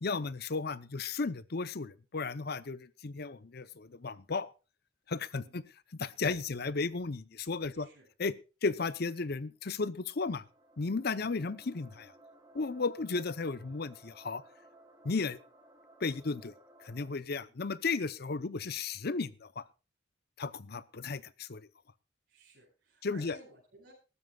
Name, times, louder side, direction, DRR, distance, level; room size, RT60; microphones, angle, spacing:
voice 1, 0.0-4.5 5.1-5.6 5.9-7.9 8.2-10.4 10.8-12.1 12.5-14.4 15.0-15.4 16.0-16.5 16.8-19.6 20.4-21.7 23.0-23.4, left 4 dB, 55° left, 17 dB, 0.7 m, -34 dB
voice 2, 7.7-8.1 11.2-11.3 13.0-13.1 17.5-17.6 22.3-23.9, right 2 dB, 55° right, -7 dB, 6.8 m, -58 dB
sound 1, 9.8-17.1, right 1 dB, 20° right, 2.8 m, -59 dB
22.0 x 13.0 x 2.3 m, 0.31 s
head